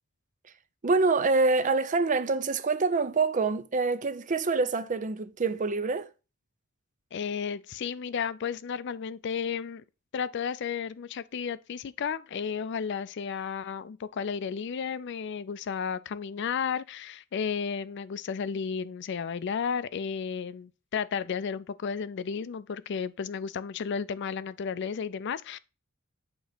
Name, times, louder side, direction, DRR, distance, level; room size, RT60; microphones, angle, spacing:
voice 1, 0.8-6.1, right 3 dB, 35° right, 0.5 m, -26 dB
voice 2, 7.1-9.8 10.1-25.6, left 6 dB, 55° left, 0.4 m, -33 dB
8.8 x 3.0 x 5.0 m
head